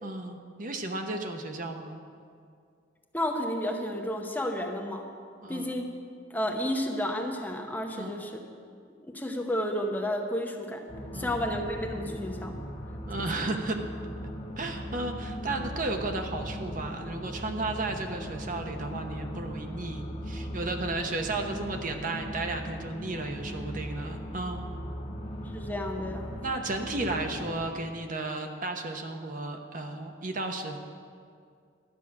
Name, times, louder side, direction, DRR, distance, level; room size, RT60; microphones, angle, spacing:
voice 1, 0.0-2.0 5.4-5.8 7.9-8.2 11.1-11.5 13.1-13.8 14.6-24.6 26.4-30.8, right 2 dB, 45° right, 4 dB, 0.9 m, -34 dB
voice 2, 3.1-5.1 5.5-5.9 6.3-8.3 9.0-10.8 11.1-12.6 13.3-13.5 25.5-26.3, left 1 dB, 10° left, 1 dB, 0.9 m, -31 dB
sound 1, 10.9-27.7, equal, 35° left, 1.5 m, -39 dB
12.0 x 6.3 x 8.4 m, 2.3 s
head